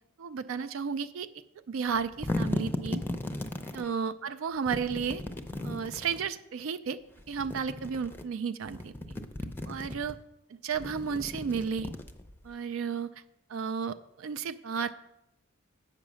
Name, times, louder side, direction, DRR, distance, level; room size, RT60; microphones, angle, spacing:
voice 1, 0.2-1.3 1.7-3.0 3.7-5.2 5.6-7.0 7.3-8.9 9.7-10.2 10.6-11.9 12.4-13.1 13.5-15.1, right 6 dB, 70° right, 9 dB, 0.4 m, -33 dB
sound 1, 1.9-3.9 4.7-6.3 7.2-8.2 8.6-10.1 10.7-12.5, left 1 dB, 10° left, 0.5 m, -36 dB
8.2 x 5.6 x 6.2 m, 0.83 s
head